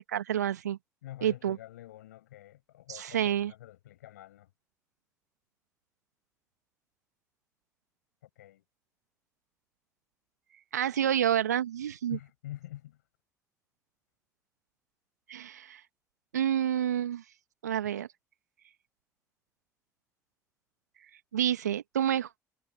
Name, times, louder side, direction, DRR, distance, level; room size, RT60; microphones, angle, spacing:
voice 1, 0.1-0.8 1.2-1.6 2.9-3.5 10.7-12.2 15.3-15.8 16.3-17.2 17.6-18.1 21.3-22.3, right 10 dB, 85° right, 1.7 m, -28 dB
voice 2, 1.0-4.5 8.4-8.6 12.1-13.0, left 14 dB, 80° left, 6.4 m, -46 dB
figure-of-eight pair, 50°, 9 cm